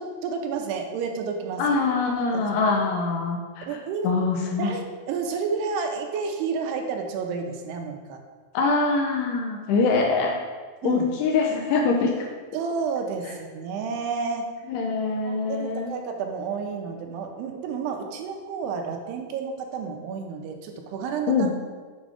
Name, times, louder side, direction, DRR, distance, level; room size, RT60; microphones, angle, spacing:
voice 1, 0.0-1.7 3.6-4.1 4.6-8.2 10.8-11.1 12.5-14.5 15.2-21.5, right 5 dB, 85° right, 3 dB, 2.7 m, -30 dB
voice 2, 1.6-3.8 4.0-4.7 8.5-10.3 10.8-12.3 14.7-15.9 21.3-21.6, left 4 dB, 80° left, 1 dB, 2.6 m, -24 dB
7.5 x 5.1 x 5.0 m, 1.5 s
omnidirectional pair, 4.9 m